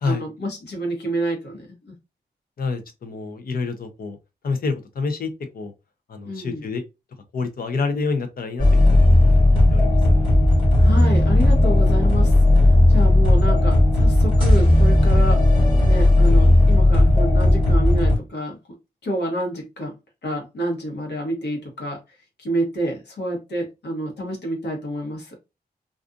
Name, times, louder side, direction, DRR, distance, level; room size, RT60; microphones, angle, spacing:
voice 1, 0.0-1.9 6.2-6.6 10.8-18.6 19.0-19.9 20.2-22.0 22.4-25.4, right 1 dB, 90° left, 1.1 m, -28 dB
voice 2, 2.6-4.2 4.4-5.7 6.1-6.8 7.3-9.0 9.5-10.3, left 4 dB, 60° left, 0.6 m, -28 dB
sound 1, 8.6-18.2, left 1 dB, 30° left, 1.3 m, -15 dB
2.5 x 2.4 x 2.4 m
wide cardioid pair, 140°, 17 cm